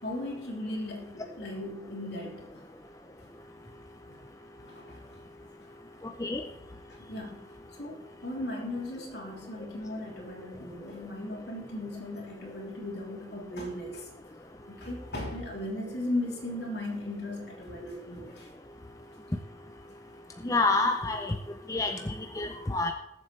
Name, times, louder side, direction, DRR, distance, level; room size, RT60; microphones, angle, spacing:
voice 1, 0.0-2.7 4.1-4.2 4.6-5.2 5.6-5.7 6.9-7.5 7.8-14.1 14.7-18.5, left 1 dB, 70° left, -1 dB, 3.2 m, -37 dB
voice 2, 20.4-21.3 21.7-22.9, left 3 dB, 20° left, 5 dB, 0.6 m, -28 dB
20.0 x 7.8 x 3.3 m, 0.84 s
head